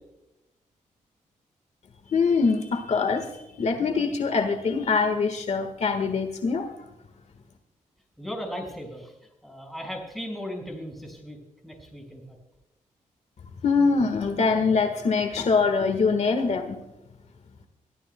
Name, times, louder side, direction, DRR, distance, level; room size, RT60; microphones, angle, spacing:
voice 1, 2.1-6.7 13.6-16.8, left 4 dB, 55° left, 7 dB, 1.5 m, -23 dB
voice 2, 8.2-9.1 9.4-11.4 11.6-12.2, equal, ahead, 1 dB, 5.5 m, -36 dB
24.5 x 14.5 x 2.2 m, 0.92 s
cardioid pair, 110°, 14 cm